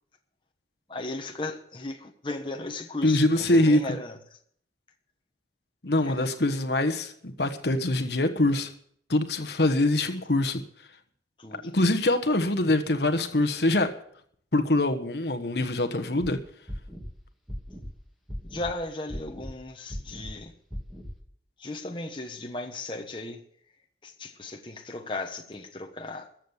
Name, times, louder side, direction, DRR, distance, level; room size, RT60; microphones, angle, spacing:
voice 1, 0.9-4.2 6.0-6.3 11.4-11.7 18.5-20.5 21.6-23.4 24.0-26.3, left 2 dB, 25° left, 1.2 m, -36 dB
voice 2, 3.0-3.8 5.8-8.7 9.1-10.6 11.7-13.9 14.5-16.4, left 2 dB, 65° left, 1.3 m, -24 dB
sound 1, 16.2-16.3 16.7-17.1 17.5-17.9 18.3-18.7 19.1-19.5 19.9-20.3 20.7-21.1, equal, ahead, 2.2 m, -37 dB
14.5 x 7.5 x 8.0 m
head